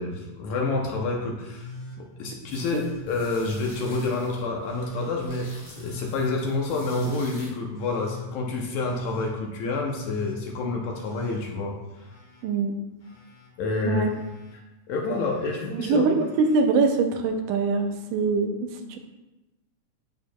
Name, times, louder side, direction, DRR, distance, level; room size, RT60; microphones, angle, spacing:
voice 1, 0.0-1.7 2.0-11.8 13.6-14.1 14.9-16.1, left 3 dB, 70° left, 0 dB, 1.9 m, -28 dB
Telephone, 1.4-2.0 2.5-3.0 3.5-4.1 4.6-5.1 5.6-6.2 6.7-7.2 7.7-8.3 8.8-9.3 9.8-10.4 10.9-12.4 12.7-13.5 14.0-14.5 15.1-15.6 16.1-16.6 17.8-17.9, left 5 dB, 55° left, 0.9 m, -41 dB
sound 1, 2.5-7.5, equal, 10° left, 1.6 m, -46 dB
voice 2, 12.4-12.8 13.8-14.1 15.9-19.0, right 4 dB, 80° right, 5 dB, 2.2 m, -23 dB
11.5 x 4.5 x 2.2 m, 1.0 s
omnidirectional pair, 3.7 m